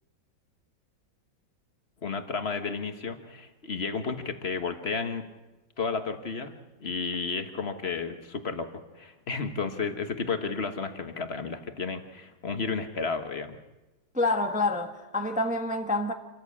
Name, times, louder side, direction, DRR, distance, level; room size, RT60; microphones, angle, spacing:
voice 1, 2.0-5.2 5.8-6.5 6.8-13.6, left 4 dB, 35° left, 1.5 m, -32 dB
voice 2, 14.1-16.1, left 2 dB, 5° right, 1.0 m, -27 dB
27.0 x 14.5 x 8.6 m
omnidirectional pair, 2.0 m